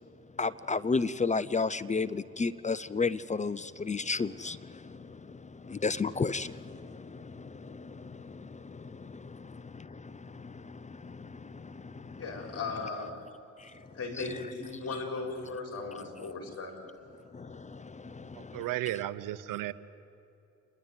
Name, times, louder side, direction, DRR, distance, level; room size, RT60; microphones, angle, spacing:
voice 1, 0.4-12.2 13.6-13.8 17.3-18.7, left 4 dB, 20° left, 17 dB, 0.6 m, -34 dB
voice 2, 12.2-13.2 13.9-16.7, left 3 dB, 45° left, 3 dB, 4.8 m, -37 dB
voice 3, 18.4-19.7, right 15 dB, 70° right, 14 dB, 0.9 m, -34 dB
28.0 x 11.0 x 9.3 m, 2.9 s
supercardioid pair, 65°, 33 cm